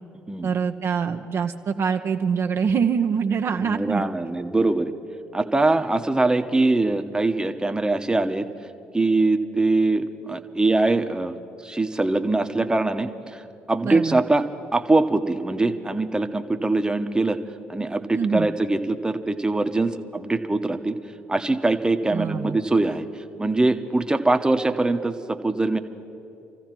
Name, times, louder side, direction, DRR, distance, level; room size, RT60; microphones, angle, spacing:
voice 1, 0.4-4.0 13.8-14.2 18.1-18.5 22.1-22.6, right 6 dB, 50° right, 5 dB, 0.6 m, -24 dB
voice 2, 3.5-4.9 5.3-8.4 8.9-11.4 11.6-13.4 13.7-14.5 14.7-17.4 17.7-21.0 21.3-23.1 23.4-25.8, right 2 dB, 15° right, 7 dB, 0.9 m, -22 dB
28.0 x 15.0 x 3.0 m, 2.8 s
hypercardioid pair, 55°, 6 cm